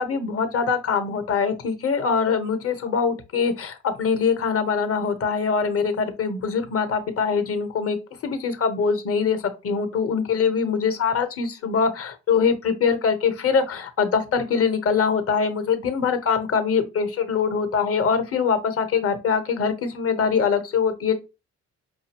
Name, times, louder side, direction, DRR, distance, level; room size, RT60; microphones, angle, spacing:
voice 1, 0.0-8.0 8.2-21.1, left 6 dB, 50° left, 1.0 m, -23 dB
5.1 x 2.6 x 2.9 m
cardioid pair, 90°, 30 cm